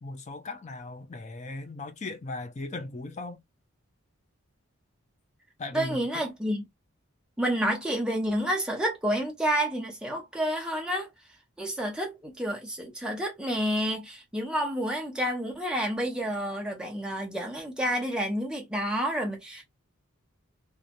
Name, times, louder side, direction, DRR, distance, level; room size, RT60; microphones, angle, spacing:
voice 1, 0.0-3.4 5.6-6.2, left 2 dB, 30° left, 0.4 m, -38 dB
voice 2, 5.7-6.6 7.4-11.1 11.6-19.6, equal, 5° right, 0.7 m, -29 dB
2.7 x 2.3 x 2.5 m
head